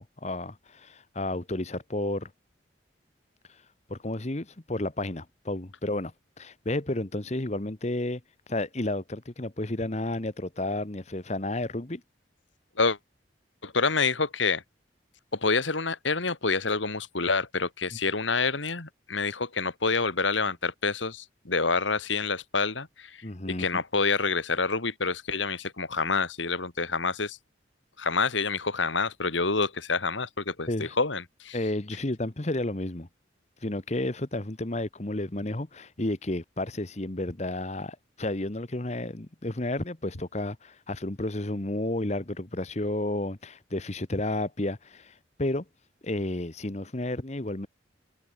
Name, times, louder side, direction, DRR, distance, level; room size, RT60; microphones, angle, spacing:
voice 1, 0.0-2.3 3.9-8.2 8.5-12.0 23.2-23.7 30.7-31.0 31.5-33.1 33.6-45.6 46.0-47.7, left 1 dB, 35° left, 1.3 m, -32 dB
voice 2, 13.6-14.6 15.3-23.2 23.6-27.4 28.0-31.6, left 4 dB, 85° left, 2.6 m, -27 dB
head